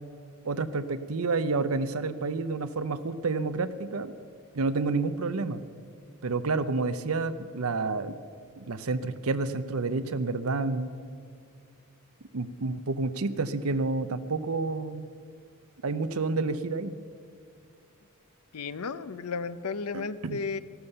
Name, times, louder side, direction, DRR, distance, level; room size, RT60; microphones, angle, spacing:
voice 1, 0.4-4.1 4.5-5.6 6.2-8.2 8.6-10.9 12.3-15.1 15.8-16.9 19.9-20.4, right 3 dB, 75° right, 13 dB, 0.7 m, -29 dB
voice 2, 18.5-20.6, left 4 dB, 90° left, 14 dB, 0.6 m, -33 dB
14.0 x 12.5 x 6.7 m, 2.3 s
head